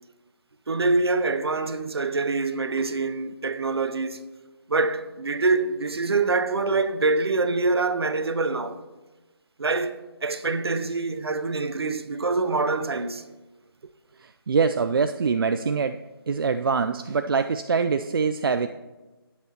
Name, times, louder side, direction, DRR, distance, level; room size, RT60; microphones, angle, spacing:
voice 1, 0.7-4.2 4.7-8.8 9.6-13.2, right 3 dB, 85° right, 0.8 m, -25 dB
voice 2, 14.2-16.0 16.3-18.7, right 5 dB, 65° right, 0.4 m, -24 dB
17.0 x 5.8 x 2.9 m
figure-of-eight pair, 165°, 13 cm